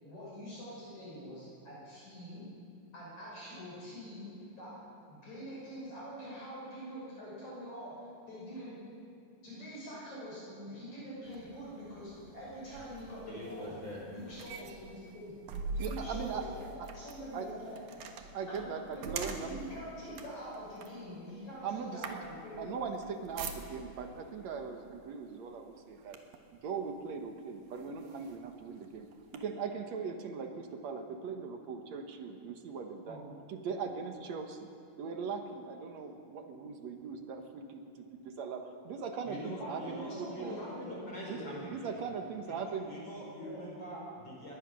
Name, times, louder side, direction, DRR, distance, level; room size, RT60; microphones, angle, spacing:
voice 1, 0.0-2.4 2.9-4.3 4.6-4.7 5.1-7.9 8.3-8.8 9.4-13.7 14.1-15.3 15.7-17.8 18.5-22.6 33.1-33.3 39.6-41.0 41.4-41.5 43.4-43.6, equal, 55° left, -7 dB, 7.6 m, -45 dB
sound 1, 11.2-24.1 24.9-25.1 25.5-26.5 27.2-27.3 27.7-29.4, right 4 dB, 85° right, 3.1 m, -45 dB
voice 2, 13.3-14.0 39.2-41.9 42.9-44.5, equal, 35° left, -3 dB, 4.2 m, -44 dB
voice 3, 15.8-16.6 17.3-17.5 18.3-19.6 21.6-22.2 22.6-26.2 26.5-29.1 29.3-33.2 33.5-34.7 35.0-40.6 41.3-42.9, right 5 dB, 60° right, 5 dB, 2.2 m, -40 dB
21.5 x 19.5 x 6.3 m, 2.4 s
omnidirectional pair, 3.9 m